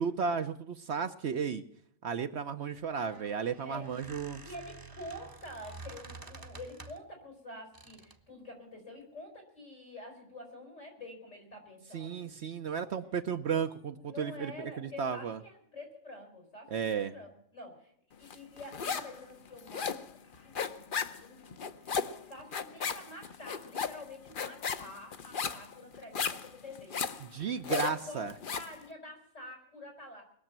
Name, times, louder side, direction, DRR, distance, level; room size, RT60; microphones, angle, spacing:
voice 1, 0.0-1.6 2.0-4.4 11.9-15.4 16.7-17.1 27.2-28.3, right 6 dB, 65° right, 7 dB, 1.0 m, -34 dB
Squeak, 2.7-7.1 7.7-8.3, right 3 dB, 20° right, 1.0 m, -50 dB
voice 2, 3.6-4.0 4.4-12.3 14.0-20.0 20.4-27.2 27.6-30.2, left 1 dB, 85° left, 2 dB, 5.4 m, -48 dB
sound 1, 18.3-19.2 19.5-28.8, left 6 dB, 50° left, 0.9 m, -35 dB
21.0 x 7.1 x 8.8 m, 0.68 s
omnidirectional pair, 1.3 m